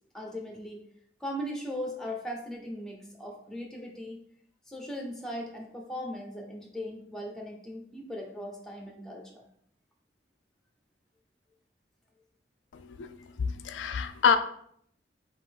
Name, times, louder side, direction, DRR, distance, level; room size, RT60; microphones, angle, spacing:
voice 1, 0.1-0.8 1.2-4.2 4.7-9.4, equal, 5° left, 0 dB, 0.7 m, -38 dB
voice 2, 12.7-14.4, left 6 dB, 90° left, 9 dB, 0.4 m, -27 dB
3.8 x 2.9 x 4.5 m, 0.67 s
head